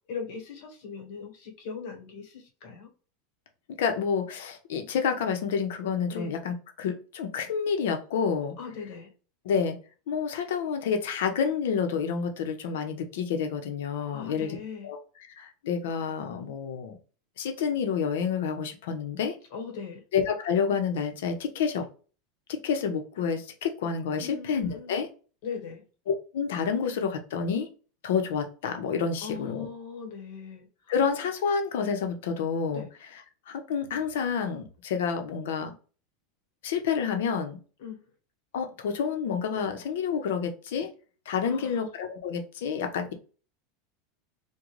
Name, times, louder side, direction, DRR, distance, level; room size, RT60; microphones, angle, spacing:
voice 1, 0.1-2.9 6.1-6.3 8.6-9.1 14.1-14.9 19.5-20.0 24.1-25.0 25.4-25.8 29.2-30.7 32.7-32.8 37.8-38.0 41.4-41.8, left 6 dB, 50° left, 2 dB, 1.3 m, -39 dB
voice 2, 3.8-8.5 9.4-9.8 10.1-14.6 14.8-15.0 15.4-17.0 17.4-19.4 20.1-21.8 22.5-25.1 26.1-27.7 28.0-29.7 30.9-32.8 33.5-35.7 36.6-37.6 38.5-40.9 41.3-43.1, left 6 dB, 75° left, 5 dB, 0.8 m, -29 dB
3.8 x 2.2 x 3.1 m, 0.37 s
supercardioid pair, 175°, 0 cm